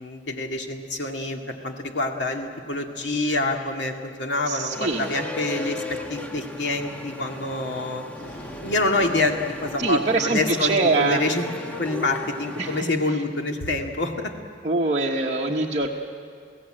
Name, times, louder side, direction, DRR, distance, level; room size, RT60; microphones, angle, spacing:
voice 1, 0.0-8.0 8.5-11.5 11.8-14.3, left 2 dB, 80° left, 3 dB, 2.2 m, -27 dB
voice 2, 4.5-5.1 9.8-11.2 12.6-13.1 14.6-15.9, right 3 dB, 40° right, -2 dB, 1.3 m, -24 dB
sound 1, 4.7-12.8, left 1 dB, 10° left, 1.2 m, -36 dB
sound 2, 8.2-11.1, left 1 dB, 55° left, 2.6 m, -44 dB
29.0 x 16.5 x 8.9 m, 2.2 s
head